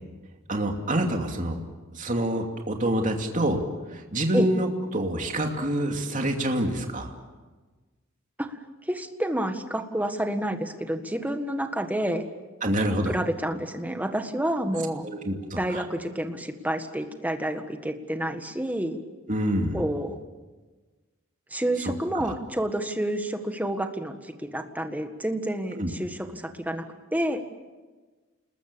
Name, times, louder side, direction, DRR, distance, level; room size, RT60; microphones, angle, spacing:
voice 1, 0.5-1.6 1.9-3.6 3.9-7.1 12.6-13.1 15.0-15.8 19.3-19.8 25.8-25.9, right 1 dB, 40° right, 3 dB, 2.7 m, -26 dB
voice 2, 8.9-12.3 13.0-15.0 15.6-19.0 19.7-20.2 21.5-26.8 27.1-27.4, right 1 dB, 10° right, 6 dB, 1.7 m, -29 dB
29.5 x 20.5 x 6.9 m, 1.3 s
head